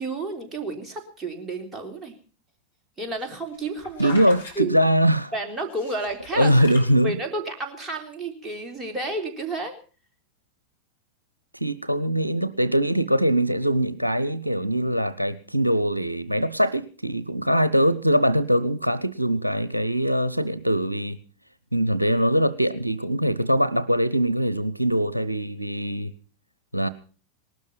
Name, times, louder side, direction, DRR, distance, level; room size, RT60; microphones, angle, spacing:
voice 1, 0.0-2.1 3.0-4.2 4.6-4.7 5.3-6.5 7.0-9.7, right 2 dB, 15° right, 3.7 m, -31 dB
Flipping book, 3.1-4.5 5.7-6.9 7.6-7.7, left 3 dB, 75° left, 5.2 m, -39 dB
voice 2, 4.0-5.3 6.3-7.2 11.5-21.2 21.7-26.1 26.7-26.9, equal, 85° right, 0.8 m, -22 dB
19.5 x 12.5 x 5.7 m
figure-of-eight pair, 90°, 0 cm